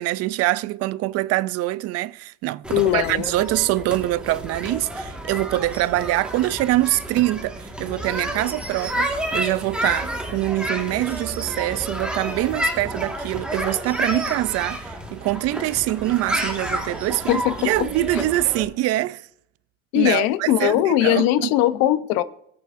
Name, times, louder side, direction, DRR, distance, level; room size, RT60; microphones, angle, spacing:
voice 1, 0.0-19.3 19.9-21.5, right 16 dB, 50° right, 0.4 m, -24 dB
sound 1, 2.6-18.6, right 1 dB, 5° right, 1.6 m, -30 dB
voice 2, 2.7-3.3 17.3-17.7 19.9-22.2, left 14 dB, 80° left, 0.8 m, -20 dB
19.0 x 8.5 x 2.6 m
cardioid pair, 145°, 33 cm